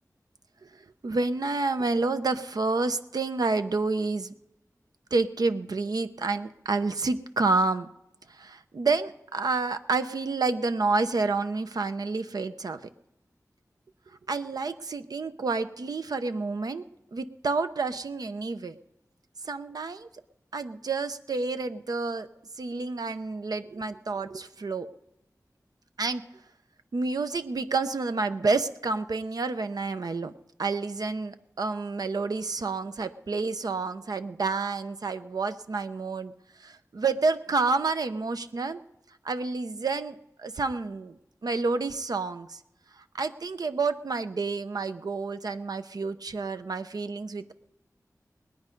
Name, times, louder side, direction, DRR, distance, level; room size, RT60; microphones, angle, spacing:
voice 1, 1.0-4.3 5.1-7.9 8.3-12.8 14.3-16.8 17.1-18.8 19.4-20.1 20.5-22.3 22.6-24.9 26.0-26.2 26.9-30.3 30.6-36.3 36.6-38.8 39.2-42.6 43.0-47.5, right 3 dB, 85° right, 9 dB, 0.7 m, -29 dB
20.0 x 9.4 x 5.2 m, 0.92 s
wide cardioid pair, 70°, 6 cm